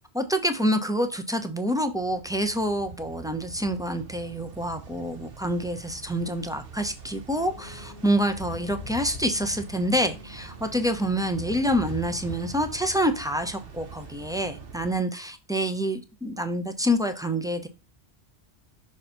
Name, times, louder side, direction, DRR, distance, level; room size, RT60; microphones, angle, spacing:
voice 1, 0.1-17.7, equal, 5° right, 0.6 m, -27 dB
sound 1, 1.8-14.9, right 7 dB, 60° right, 1.1 m, -45 dB
sound 2, 7.3-14.1, left 6 dB, 40° left, 0.8 m, -43 dB
6.3 x 3.9 x 4.3 m
omnidirectional pair, 1.1 m